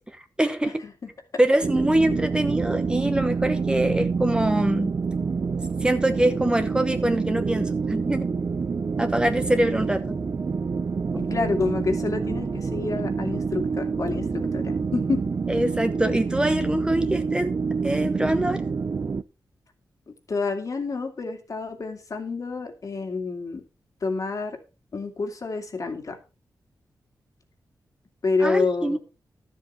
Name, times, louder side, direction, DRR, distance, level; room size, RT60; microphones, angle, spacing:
voice 1, 0.1-0.8 1.4-5.0 5.8-8.3 9.0-10.0 15.5-17.6 17.8-18.6 28.4-29.0, right 1 dB, 10° right, 0.9 m, -24 dB
sound 1, 1.6-19.2, right 5 dB, 40° right, 0.5 m, -27 dB
voice 2, 11.2-15.2 20.3-23.6 24.0-24.6 24.9-26.2 28.2-29.0, left 4 dB, 50° left, 2.2 m, -28 dB
12.5 x 7.7 x 4.3 m
wide cardioid pair, 120°, 7 cm